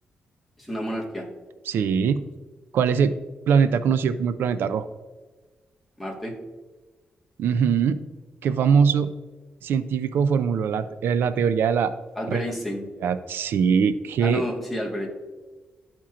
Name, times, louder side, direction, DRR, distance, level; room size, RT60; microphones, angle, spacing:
voice 1, 0.6-1.3 6.0-6.3 12.1-12.8 14.2-15.1, equal, 5° left, -2 dB, 1.5 m, -30 dB
voice 2, 1.7-2.2 2.7-3.1 3.5-4.9 7.4-8.0 8.4-9.1 9.6-11.9 12.3-12.4 13.0-14.4, right 6 dB, 85° right, 12 dB, 0.4 m, -22 dB
13.0 x 4.4 x 2.4 m, 1.3 s
wide cardioid pair, 125°, 4 cm